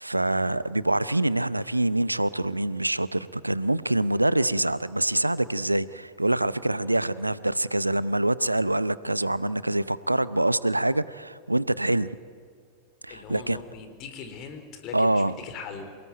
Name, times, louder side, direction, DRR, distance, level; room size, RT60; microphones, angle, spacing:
voice 1, 0.0-12.1 13.0-13.6 14.9-15.3, right 1 dB, 85° right, 18 dB, 0.7 m, -25 dB
voice 2, 13.1-16.0, left 6 dB, 40° left, 7 dB, 4.1 m, -40 dB
27.5 x 18.5 x 9.3 m, 2.2 s
figure-of-eight pair, 90°, 0 cm